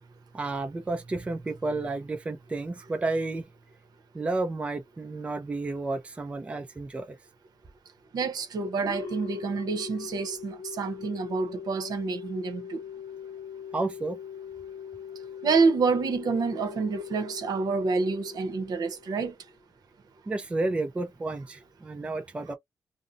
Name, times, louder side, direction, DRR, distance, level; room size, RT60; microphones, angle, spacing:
voice 1, 0.3-3.4 4.1-7.2 13.7-14.2 20.3-22.5, right 2 dB, 15° right, 0.5 m, -31 dB
voice 2, 8.1-12.8 15.4-19.3, right 4 dB, 70° right, 0.7 m, -28 dB
sound 1, 8.8-19.5, left 7 dB, 50° left, 0.4 m, -41 dB
2.5 x 2.1 x 2.5 m
wide cardioid pair, 150°, 7 cm